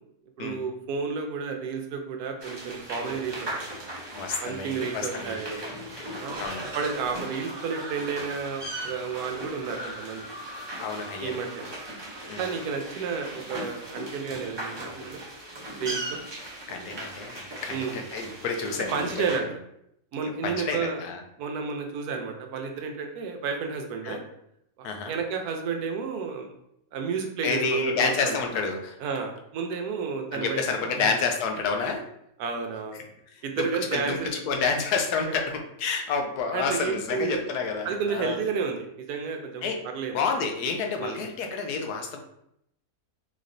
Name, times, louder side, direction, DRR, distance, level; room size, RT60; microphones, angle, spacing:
voice 1, 0.4-3.9 4.4-5.6 6.2-6.4 6.7-10.3 11.2-11.5 12.4-15.2 15.8-16.2 17.7-18.0 18.9-19.5 20.1-21.0 21.4-24.2 24.8-26.5 26.9-28.4 29.0-31.1 32.4-33.0 33.4-34.3 36.5-37.4 37.8-40.3 41.0-41.2, right 5 dB, 80° right, 4 dB, 1.1 m, -31 dB
sound 1, 2.4-19.4, right 1 dB, 35° right, 0.4 m, -38 dB
voice 2, 4.2-5.4 6.0-6.6 10.8-11.4 12.3-12.4 16.7-19.3 20.4-21.2 24.0-24.2 24.8-25.1 27.4-29.0 30.3-32.0 33.6-34.2 34.5-35.4 35.8-38.4 39.6-39.8 40.1-42.2, left 4 dB, 85° left, 4 dB, 1.2 m, -29 dB
4.0 x 3.1 x 2.5 m, 0.76 s
omnidirectional pair, 1.6 m